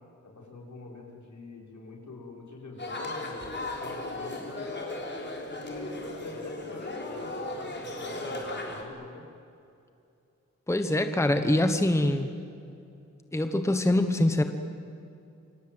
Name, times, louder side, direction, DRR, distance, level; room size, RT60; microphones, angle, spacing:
voice 1, 0.2-3.4 3.8-4.8 5.4-9.2, left 3 dB, 70° left, 0 dB, 5.9 m, -44 dB
sound 1, 2.8-8.8, left 2 dB, 35° left, 4.1 m, -36 dB
voice 2, 10.7-12.3 13.3-14.4, left 1 dB, 10° left, 7 dB, 1.1 m, -24 dB
28.0 x 26.5 x 8.0 m, 2.6 s
wide cardioid pair, 170°, 30 cm